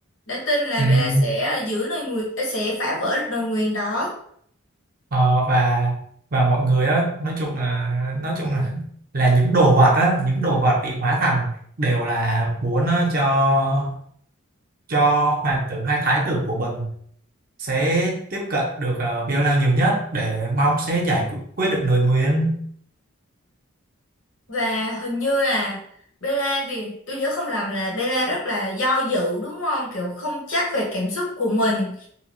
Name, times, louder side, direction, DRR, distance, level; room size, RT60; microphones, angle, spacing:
voice 1, 0.3-4.1 24.5-25.8 26.2-32.1, left 1 dB, 65° left, -3 dB, 1.0 m, -25 dB
voice 2, 0.8-1.3 5.1-5.9 6.3-8.8 9.1-11.5 11.8-13.9 14.9-16.9 17.6-22.6, right 2 dB, 45° right, -1 dB, 0.6 m, -20 dB
2.8 x 2.3 x 2.9 m, 0.64 s
head